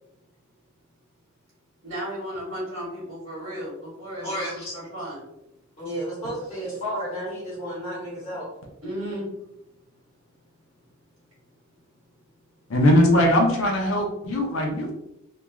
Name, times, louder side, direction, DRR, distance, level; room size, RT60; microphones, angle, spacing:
voice 1, 1.8-5.2 6.7-6.8 8.8-9.3, equal, 75° right, -7 dB, 1.1 m, -34 dB
voice 2, 4.2-4.8 5.8-8.5 9.1-9.3, equal, 30° left, -9 dB, 1.1 m, -32 dB
voice 3, 12.7-14.9, left 1 dB, 70° left, 1 dB, 0.6 m, -20 dB
3.0 x 2.4 x 2.3 m, 0.86 s
head